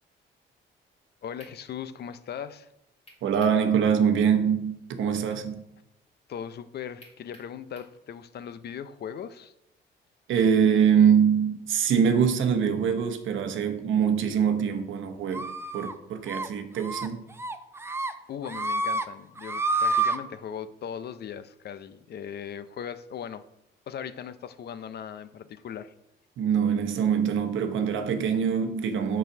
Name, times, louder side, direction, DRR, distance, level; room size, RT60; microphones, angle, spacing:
voice 1, 1.2-2.7 6.3-9.5 18.3-23.4 23.9-25.9, left 8 dB, 55° left, 0.5 m, -38 dB
sound 1, 1.4-1.6 3.1-3.6 4.0-4.1 7.0-8.0, left 1 dB, 30° left, 2.3 m, -51 dB
voice 2, 3.2-5.6 10.3-17.3 26.4-29.2, right 7 dB, 75° right, 0.9 m, -24 dB
sound 2, 15.3-15.9 16.3-16.5 16.8-17.1 17.4-18.1 18.4-19.0 19.4-20.2, right 3 dB, 10° right, 0.5 m, -28 dB
6.7 x 4.1 x 6.0 m
cardioid pair, 90°, 20 cm